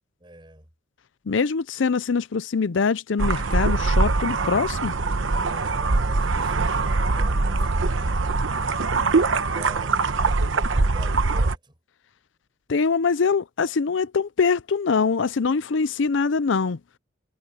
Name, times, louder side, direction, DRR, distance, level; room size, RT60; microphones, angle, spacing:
voice 1, 0.2-0.7 5.4-8.7 9.5-11.7, right 1 dB, 25° right, 7.7 m, -46 dB
voice 2, 1.3-4.9 12.7-16.8, left 5 dB, 65° left, 0.5 m, -23 dB
sound 1, 3.2-11.5, right 3 dB, 75° right, 1.0 m, -22 dB
head